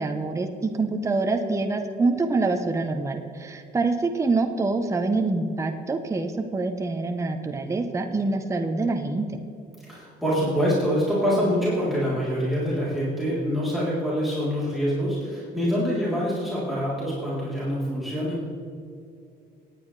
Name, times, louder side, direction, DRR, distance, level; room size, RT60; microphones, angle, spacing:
voice 1, 0.0-9.4, right 3 dB, 15° right, 5 dB, 0.9 m, -26 dB
voice 2, 9.9-18.5, equal, ahead, -9 dB, 3.4 m, -25 dB
18.0 x 9.6 x 3.3 m, 2.4 s
cardioid pair, 110°, 17 cm